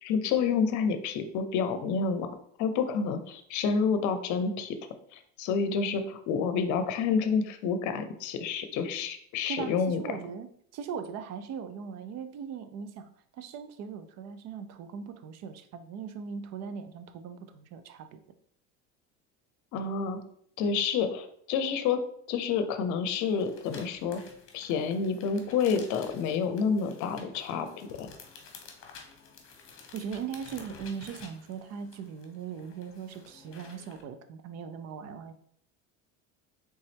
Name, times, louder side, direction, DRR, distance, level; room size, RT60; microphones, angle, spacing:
voice 1, 0.0-2.3 2.6-4.8 5.1-10.0 19.7-20.2 20.6-22.0 22.3-24.2 24.5-28.1, left 5 dB, 60° left, 9 dB, 0.7 m, -29 dB
voice 2, 9.5-10.5 10.7-18.2 29.9-35.3, right 7 dB, 50° right, 10 dB, 0.6 m, -39 dB
sound 1, 23.1-34.0, left 5 dB, 40° left, 1.0 m, -51 dB
4.0 x 3.5 x 3.4 m, 0.65 s
supercardioid pair, 110°, 34 cm